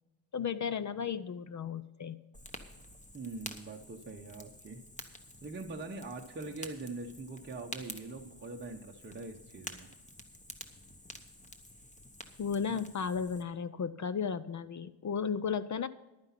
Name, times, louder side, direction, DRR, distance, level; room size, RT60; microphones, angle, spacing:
voice 1, 0.3-2.2 12.4-15.9, left 6 dB, 40° left, 15 dB, 0.5 m, -34 dB
Fire, 2.3-13.4, left 1 dB, 15° left, 1.1 m, -49 dB
voice 2, 3.1-4.8 5.4-9.9 12.6-12.8, right 3 dB, 25° right, 1 dB, 0.8 m, -43 dB
11.5 x 9.6 x 5.7 m, 1.1 s
wide cardioid pair, 130°, 48 cm